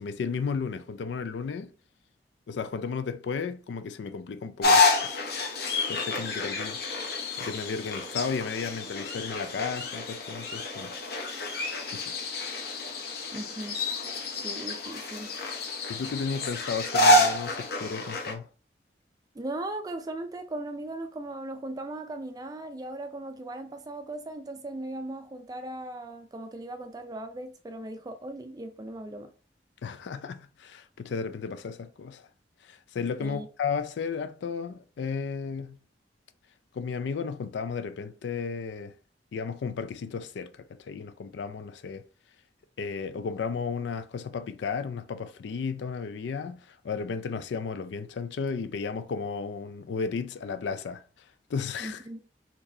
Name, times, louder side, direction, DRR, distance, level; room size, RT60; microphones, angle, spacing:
voice 1, 0.0-1.7 2.5-5.2 5.9-6.8 7.4-11.0 11.9-12.2 15.9-18.5 29.8-32.3 32.6-35.8 36.7-38.9 39.3-42.1 42.8-51.0 51.5-52.0, left 5 dB, 90° left, 0.4 m, -34 dB
sound 1, 4.6-18.3, left 2 dB, 60° left, 0.9 m, -28 dB
voice 2, 13.3-13.8 14.3-15.3 19.4-29.3 33.2-33.5 51.8-52.2, right 1 dB, 20° right, 0.3 m, -38 dB
4.1 x 3.0 x 2.6 m
head